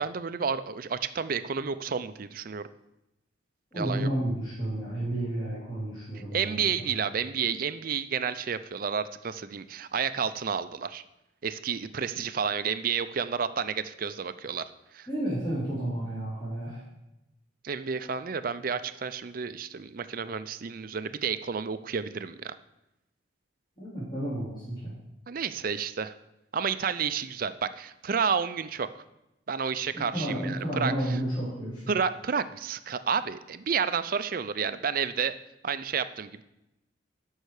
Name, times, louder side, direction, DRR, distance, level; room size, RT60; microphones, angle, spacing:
voice 1, 0.0-2.7 3.8-4.1 6.3-11.0 11.4-14.6 14.9-15.1 17.6-22.5 25.3-26.2 26.5-29.0 29.5-31.2 31.9-36.4, right 6 dB, 45° right, 12 dB, 0.4 m, -31 dB
voice 2, 3.7-7.0 15.1-16.8 23.8-24.9 30.1-31.9, right 1 dB, 25° left, -11 dB, 3.4 m, -31 dB
13.0 x 5.6 x 4.8 m, 0.91 s
head